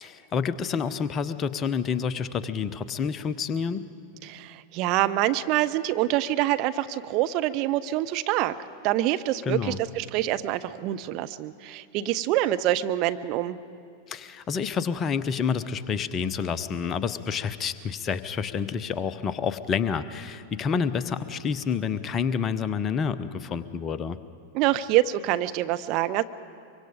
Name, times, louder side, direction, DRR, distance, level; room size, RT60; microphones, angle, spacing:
voice 1, 0.0-3.8 9.5-9.8 14.1-24.2, left 6 dB, 25° left, 14 dB, 0.7 m, -28 dB
voice 2, 4.2-8.5 8.8-13.6 24.5-26.2, right 14 dB, 40° right, 11 dB, 0.6 m, -26 dB
24.0 x 24.0 x 5.1 m, 2.4 s
figure-of-eight pair, 90°, 0 cm